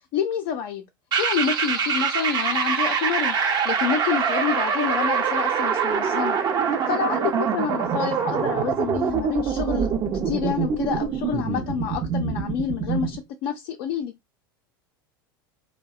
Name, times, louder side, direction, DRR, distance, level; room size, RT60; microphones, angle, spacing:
voice 1, 0.1-0.9 1.2-3.3 3.6-6.4 6.9-9.9 10.2-14.1, left 8 dB, 55° left, 0.5 m, -28 dB
sound 1, 1.1-13.2, right 6 dB, 35° right, 0.6 m, -24 dB
2.6 x 2.1 x 2.3 m
hypercardioid pair, 85°, 12 cm